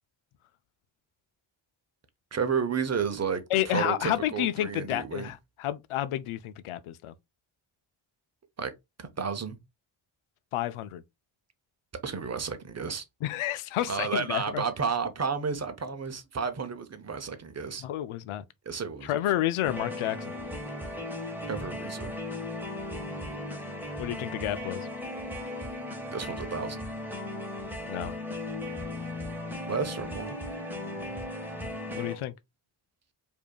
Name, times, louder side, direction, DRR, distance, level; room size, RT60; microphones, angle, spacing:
voice 1, 2.3-5.3 8.6-8.7 9.0-9.6 12.0-13.0 13.9-17.8 18.7-19.2 21.5-22.1 26.1-26.9 29.6-30.4, right 5 dB, 35° right, 0.7 m, -32 dB
voice 2, 3.5-7.1 10.5-11.0 13.2-14.6 17.8-18.4 19.0-20.3 24.0-24.9 27.9-28.1 31.9-32.3, left 13 dB, 85° left, 0.6 m, -30 dB
sound 1, 19.6-32.2, left 1 dB, 5° right, 1.3 m, -37 dB
4.9 x 2.7 x 2.3 m
cardioid pair, 80°, 49 cm